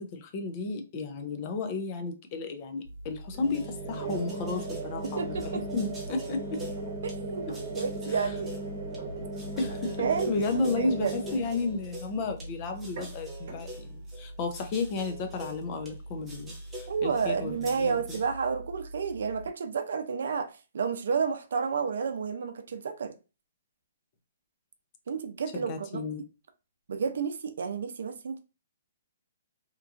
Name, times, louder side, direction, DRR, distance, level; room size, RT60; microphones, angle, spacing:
voice 1, 0.0-5.4 5.7-6.6 7.5-7.6 8.1-8.2 9.6-18.2 25.5-26.3, left 3 dB, 35° left, 0.5 m, -33 dB
sound 1, 2.9-19.5, right 2 dB, 50° right, 0.9 m, -39 dB
sound 2, 3.3-7.2 7.5-9.0 9.3-12.5 12.8-15.9 16.3-18.3, right 1 dB, 10° right, 1.0 m, -46 dB
voice 2, 5.0-5.6 7.0-8.5 9.8-10.5 10.8-11.1 16.9-23.1 25.1-26.0 26.9-28.4, right 6 dB, 70° right, 0.5 m, -31 dB
2.9 x 2.3 x 2.4 m
hypercardioid pair, 150°, 0 cm